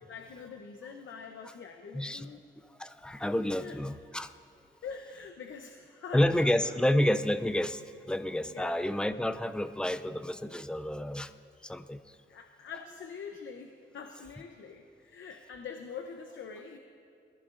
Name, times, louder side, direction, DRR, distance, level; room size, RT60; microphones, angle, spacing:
voice 1, 0.0-2.4 3.5-3.8 4.8-7.2 8.4-8.9 12.3-16.8, left 6 dB, 75° left, 5 dB, 0.7 m, -44 dB
voice 2, 1.9-2.3 2.8-4.3 6.1-7.8 8.1-11.3 11.6-12.0, left 1 dB, 5° left, 10 dB, 0.3 m, -29 dB
20.5 x 14.5 x 2.5 m, 2.4 s
wide cardioid pair, 155°, 20 cm